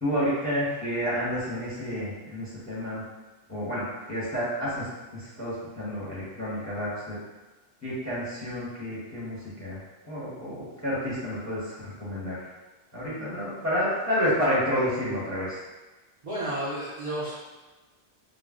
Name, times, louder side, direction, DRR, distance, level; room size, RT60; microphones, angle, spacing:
voice 1, 0.0-3.0 3.5-4.9 5.1-7.2 7.8-12.5 12.9-15.6, equal, 15° left, -9 dB, 0.8 m, -30 dB
voice 2, 16.2-17.3, right 1 dB, 45° right, -9 dB, 0.5 m, -31 dB
2.4 x 2.0 x 3.5 m, 1.2 s
omnidirectional pair, 1.2 m